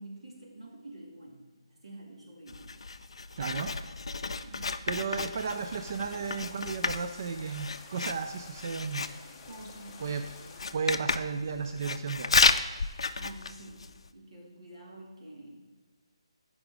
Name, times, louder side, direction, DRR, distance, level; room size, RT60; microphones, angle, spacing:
voice 1, 0.0-2.8 4.4-5.2 9.5-10.1 10.4-10.5 13.2-13.8 14.1-15.6, right 1 dB, 85° right, -2 dB, 2.5 m, -48 dB
Writing, 2.5-14.1, left 4 dB, 65° left, 0.4 m, -32 dB
voice 2, 3.4-3.7 4.5-4.6 4.9-9.1 10.0-10.2 10.7-12.3, right 5 dB, 35° right, 7 dB, 0.3 m, -34 dB
sound 1, 5.3-10.7, left 4 dB, 15° left, 0.7 m, -50 dB
8.9 x 4.9 x 4.9 m, 1.4 s
hypercardioid pair, 170°, 3 cm